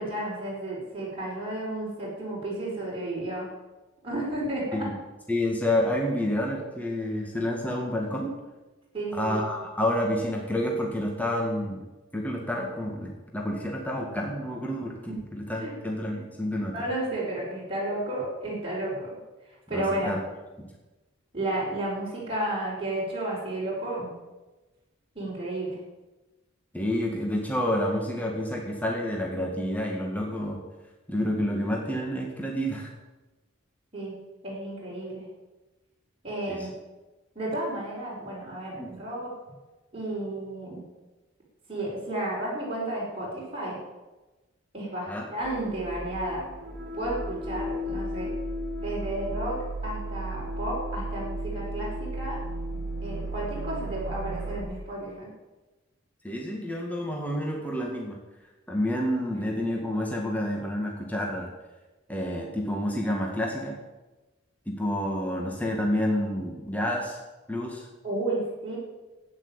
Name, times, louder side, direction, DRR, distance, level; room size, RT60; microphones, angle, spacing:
voice 1, 0.0-3.5 4.0-4.9 8.9-9.4 15.6-15.7 16.1-16.2 16.7-19.1 19.7-20.1 21.3-24.1 25.2-25.8 33.9-35.3 36.2-36.7 37.4-39.3 39.9-40.8 41.7-43.8 44.7-46.4 46.9-48.3 48.8-52.4 53.0-55.3 68.0-68.8, right 1 dB, 30° right, -6 dB, 5.3 m, -32 dB
voice 2, 5.3-8.4 9.1-11.8 12.1-16.7 19.7-20.2 20.6-20.7 26.7-30.6 31.1-32.9 36.5-36.6 38.8-38.9 45.1-45.3 56.2-58.2 58.7-61.5 62.1-63.8 64.7-67.2 67.5-67.9, left 1 dB, 10° left, -1 dB, 1.9 m, -29 dB
sound 1, 45.4-54.6, right 1 dB, 55° right, 2.4 m, -34 dB
12.0 x 9.5 x 8.1 m, 1.1 s
head